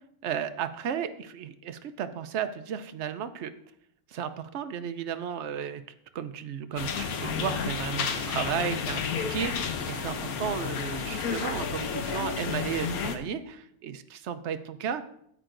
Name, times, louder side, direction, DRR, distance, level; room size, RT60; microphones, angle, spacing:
voice 1, 0.2-3.5 4.1-5.8 6.1-15.0, right 8 dB, 60° right, 10 dB, 0.8 m, -34 dB
sound 1, 6.7-12.6, left 5 dB, 55° left, 1.3 m, -44 dB
sound 2, 6.8-13.2, left 6 dB, 75° left, 1.3 m, -31 dB
13.0 x 8.8 x 2.5 m, 0.71 s
omnidirectional pair, 1.6 m